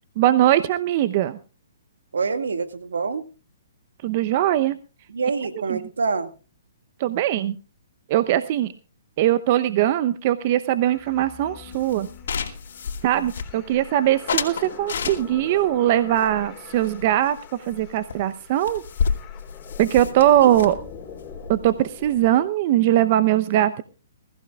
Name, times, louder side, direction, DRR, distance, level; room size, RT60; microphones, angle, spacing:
voice 1, 0.2-1.4 4.0-4.8 5.7-5.8 7.0-7.6 8.1-8.7 9.2-12.1 13.0-18.8 19.8-20.8 21.5-23.8, right 13 dB, 45° right, 13 dB, 0.8 m, -21 dB
voice 2, 2.1-3.2 5.1-6.3 20.4-20.5, right 4 dB, 80° right, 9 dB, 2.1 m, -26 dB
sound 1, 10.8-22.5, left 7 dB, 20° left, 4.2 m, -44 dB
sound 2, 11.7-13.8 14.3-15.6 16.1-17.4 17.7-17.8 18.1-18.2 18.4-22.3, left 6 dB, 65° left, 2.6 m, -30 dB
21.5 x 15.0 x 2.4 m, 0.33 s
hypercardioid pair, 135°, 0 cm